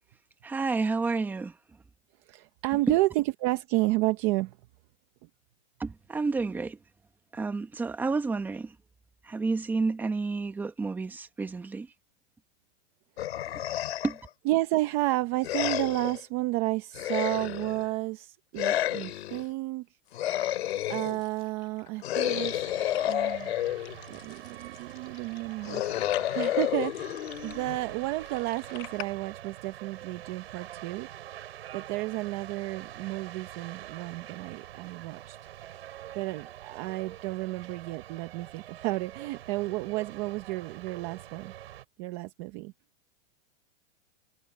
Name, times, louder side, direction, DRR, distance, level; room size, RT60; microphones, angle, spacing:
voice 1, 0.4-1.6 2.7-3.0 5.8-6.8 7.3-8.7 9.2-11.9 14.0-14.2, right 4 dB, 5° right, 1.0 m, -30 dB
voice 2, 2.3-4.6 13.3-14.0 14.5-19.9 20.9-22.7 23.0-23.6 24.1-31.1 31.7-35.4 36.1-41.5 42.0-42.7, right 19 dB, 25° right, 0.6 m, -31 dB
sound 1, 13.2-14.3 15.4-16.2 16.9-17.9 18.5-19.4 20.1-21.2 22.0-24.1 25.6-28.0, left 13 dB, 80° left, 2.8 m, -30 dB
sound 2, 20.1-29.1, left 18 dB, 30° left, 1.2 m, -48 dB
sound 3, 22.1-41.8, right 12 dB, 80° right, 4.2 m, -45 dB
supercardioid pair, 170°, 31 cm